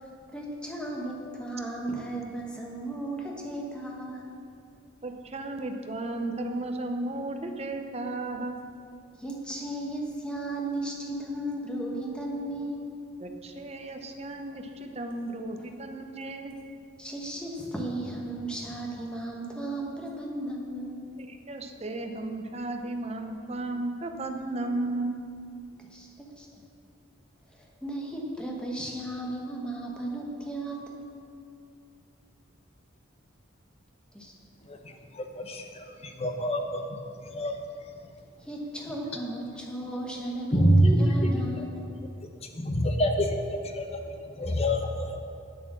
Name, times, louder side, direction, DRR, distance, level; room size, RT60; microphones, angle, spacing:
voice 1, 0.3-4.4 9.2-12.9 17.0-21.0 25.9-26.5 27.5-31.0 34.1-34.3 38.4-41.9, right 1 dB, 5° left, -1 dB, 1.2 m, -35 dB
voice 2, 5.0-8.6 13.2-16.5 21.2-25.2, right 2 dB, 30° right, 5 dB, 0.7 m, -34 dB
voice 3, 34.6-37.6 40.5-41.3 41.6-41.7 42.2-45.2, equal, 30° left, 4 dB, 0.8 m, -27 dB
8.8 x 7.7 x 6.2 m, 2.5 s
head